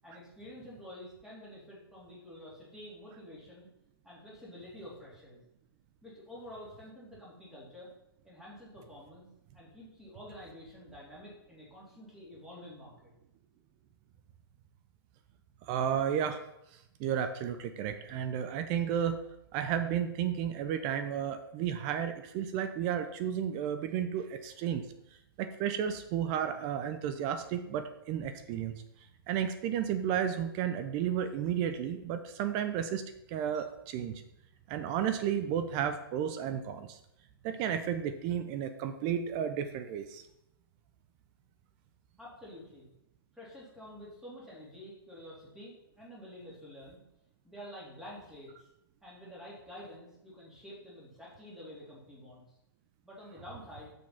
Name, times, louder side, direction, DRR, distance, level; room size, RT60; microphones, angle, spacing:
voice 1, 0.0-3.7 4.0-5.4 6.0-7.9 8.2-9.3 9.5-13.1 42.2-42.9 43.3-47.0 47.4-48.7 49.0-52.4 53.0-53.9, left 1 dB, 5° right, -6 dB, 3.2 m, -49 dB
voice 2, 15.7-16.4 17.0-19.2 19.5-24.9 25.4-28.8 29.3-33.0 33.3-34.2 34.7-37.0 37.4-40.2, right 9 dB, 30° right, 9 dB, 0.6 m, -32 dB
6.7 x 6.4 x 5.7 m, 0.83 s
hypercardioid pair, 140°, 13 cm